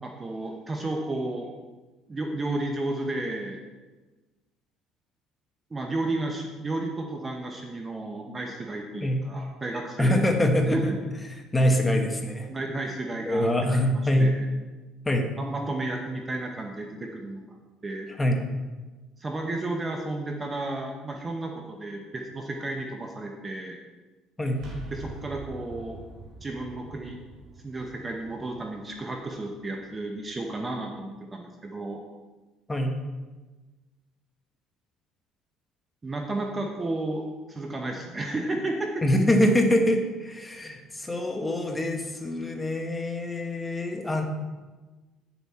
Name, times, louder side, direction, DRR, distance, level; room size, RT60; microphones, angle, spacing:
voice 1, 0.0-1.5 2.1-3.6 5.7-10.2 10.7-10.8 12.5-13.5 13.9-14.5 15.4-17.6 17.8-18.1 19.2-23.8 24.9-26.0 26.4-27.2 27.6-32.0 36.0-37.2 37.5-39.0, right 2 dB, 20° right, 2 dB, 0.7 m, -32 dB
voice 2, 10.0-10.9 11.3-12.5 13.2-14.3 15.0-15.3 18.2-18.4 24.4-24.6 32.7-32.9 39.0-44.2, left 1 dB, 10° left, 3 dB, 1.0 m, -24 dB
sound 1, 24.5-30.3, right 3 dB, 55° right, 2.0 m, -45 dB
8.9 x 7.1 x 4.3 m, 1.3 s
cardioid pair, 155°, 0 cm